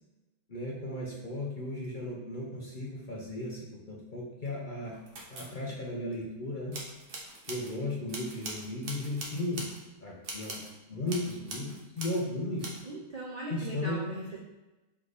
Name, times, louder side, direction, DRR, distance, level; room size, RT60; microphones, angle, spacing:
voice 1, 0.5-4.9 5.3-6.8 7.5-9.7 10.0-10.6 10.9-12.7 13.5-14.0, left 1 dB, 50° left, -3 dB, 0.6 m, -35 dB
sound 1, 4.8-5.6 6.7-7.7 8.1-9.8 10.2-10.7 11.1-12.2 12.6-12.8, right 2 dB, 45° right, 0.8 m, -42 dB
voice 2, 12.8-14.4, right 2 dB, 75° right, -3 dB, 0.3 m, -39 dB
3.6 x 3.2 x 3.9 m, 1.1 s
omnidirectional pair, 1.6 m